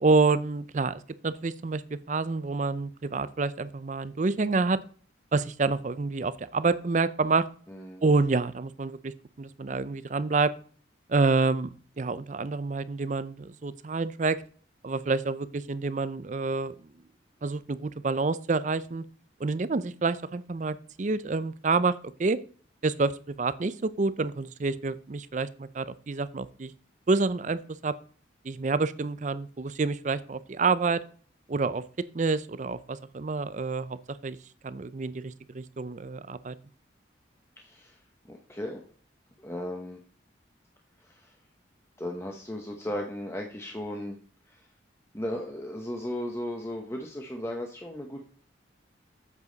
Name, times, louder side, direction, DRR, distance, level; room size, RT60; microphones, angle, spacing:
voice 1, 0.0-1.8 2.1-4.8 5.3-7.5 8.0-10.5 11.1-11.7 12.0-14.4 14.8-16.7 17.4-19.0 19.4-21.9 22.2-22.4 22.8-26.7 27.1-28.0 28.4-31.0 31.5-31.8 32.1-34.0 34.2-34.4 34.6-36.5, right 3 dB, 40° right, 16 dB, 0.5 m, -28 dB
voice 2, 7.7-8.0 37.6-38.0 38.3-38.8 39.4-40.0 41.0-41.4 42.0-44.2 44.5-44.7 45.1-48.2, left 1 dB, 15° left, 1 dB, 0.9 m, -36 dB
8.3 x 7.2 x 3.9 m, 0.44 s
head